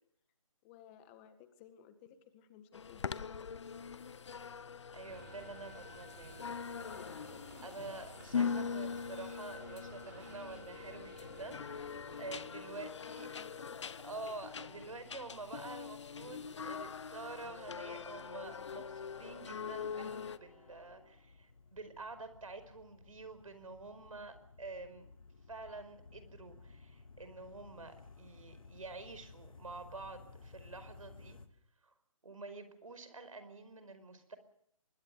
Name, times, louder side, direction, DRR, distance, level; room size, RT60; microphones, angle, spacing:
voice 1, 0.6-3.5 12.8-13.8, left 9 dB, 20° left, 10 dB, 1.8 m, -57 dB
sound 1, 2.7-20.4, left 6 dB, 55° left, 1.0 m, -42 dB
voice 2, 4.9-6.4 7.6-13.3 14.0-25.1 25.5-31.4 31.8-31.9 32.2-34.4, right 3 dB, 75° right, 11 dB, 5.1 m, -48 dB
sound 2, 5.0-12.5, right 5 dB, 40° right, 4.7 m, -56 dB
sound 3, 16.8-31.5, left 4 dB, 75° left, 2.6 m, -58 dB
24.5 x 21.5 x 6.9 m, 0.72 s
figure-of-eight pair, 155°, 17 cm